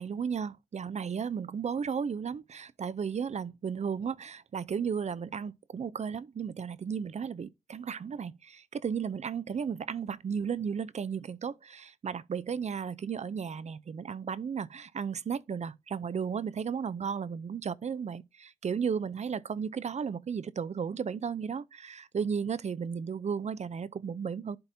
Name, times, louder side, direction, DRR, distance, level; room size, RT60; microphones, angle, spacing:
voice 1, 0.0-24.6, right 6 dB, 55° right, 0.5 m, -34 dB
11.5 x 4.1 x 2.7 m
cardioid pair, 45°, 14 cm